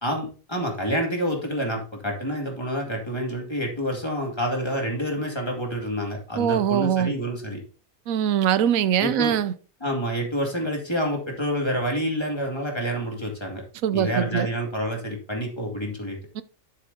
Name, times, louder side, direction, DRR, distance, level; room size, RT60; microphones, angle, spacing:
voice 1, 0.0-7.6 9.0-9.3 9.8-13.6 13.9-16.2, equal, 20° left, 2.2 m, -28 dB
voice 2, 6.3-7.1 8.1-9.5 13.8-14.5 16.3-16.4, right 9 dB, 85° right, 1.0 m, -22 dB
12.0 x 6.5 x 2.8 m
omnidirectional pair, 1.4 m